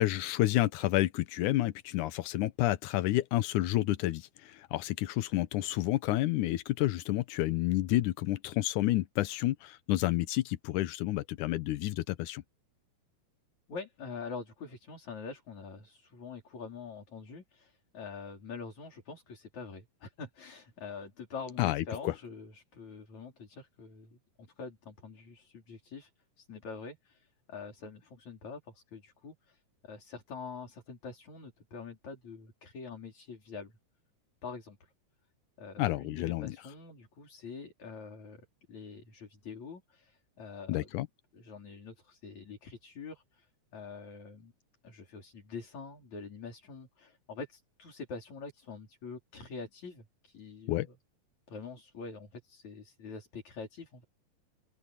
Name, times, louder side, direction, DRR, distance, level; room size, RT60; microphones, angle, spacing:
voice 1, 0.0-12.4 21.6-22.1 35.8-36.6 40.7-41.1 50.7-50.9, left 16 dB, 85° left, 2.3 m, -30 dB
voice 2, 13.7-26.1 26.4-33.8 34.4-34.9 35.6-40.9 41.3-44.5 44.8-50.9 51.5-54.0, left 4 dB, 65° left, 6.0 m, -45 dB
open air
omnidirectional pair, 3.5 m